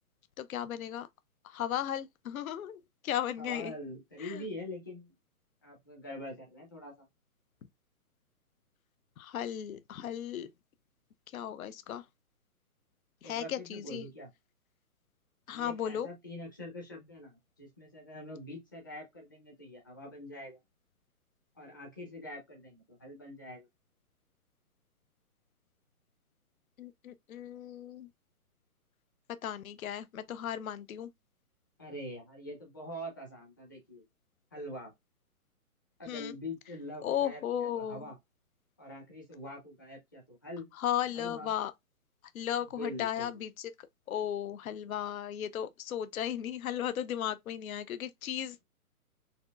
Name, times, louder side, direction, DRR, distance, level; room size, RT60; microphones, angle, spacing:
voice 1, 0.4-1.1 1.4-2.8 3.0-3.7 4.2-4.4 9.2-10.5 11.3-12.0 13.2-14.1 15.5-16.1 26.8-28.1 29.4-31.1 36.1-36.3 37.0-38.0 40.8-41.7 42.3-43.5 44.1-48.6, left 10 dB, 65° left, 0.6 m, -35 dB
voice 2, 3.4-5.1 5.6-7.0 13.2-14.3 15.5-20.6 21.6-23.7 31.8-34.0 34.5-34.9 36.0-38.2 38.8-40.7 41.1-41.5 42.8-43.5, left 1 dB, 15° left, 0.6 m, -44 dB
4.2 x 3.0 x 2.4 m
hypercardioid pair, 165°, 45 cm